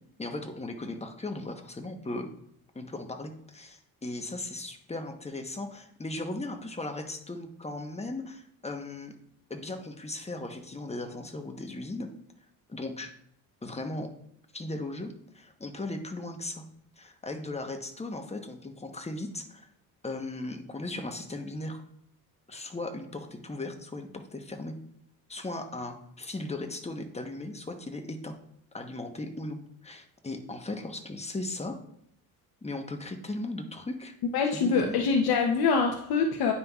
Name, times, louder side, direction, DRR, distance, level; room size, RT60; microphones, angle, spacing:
voice 1, 0.2-2.3 2.7-9.2 9.5-12.1 12.7-13.1 13.6-14.1 14.5-16.6 17.0-19.7 20.0-21.8 22.5-24.7 25.3-28.3 28.7-31.8 32.6-34.2 34.5-35.0, left 2 dB, 20° left, 5 dB, 1.0 m, -37 dB
voice 2, 34.3-36.5, left 5 dB, 85° left, 2 dB, 0.8 m, -24 dB
9.4 x 5.6 x 2.4 m, 0.68 s
cardioid pair, 90°, 36 cm